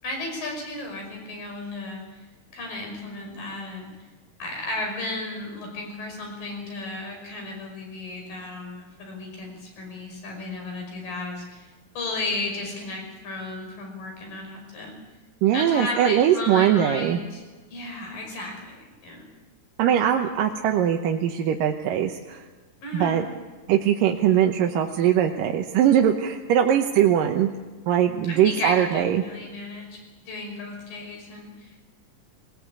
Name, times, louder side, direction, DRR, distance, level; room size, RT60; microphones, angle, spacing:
voice 1, 0.0-2.2 2.5-3.9 4.4-11.7 12.0-15.0 15.5-19.3 22.8-23.2 28.2-31.8, left 2 dB, 90° left, 2 dB, 7.2 m, -34 dB
voice 2, 15.4-17.2 19.8-22.4 22.9-23.3 23.7-27.5 27.9-29.2, right 10 dB, 90° right, 3 dB, 2.7 m, -21 dB
21.5 x 19.5 x 8.6 m, 1.3 s
omnidirectional pair, 3.8 m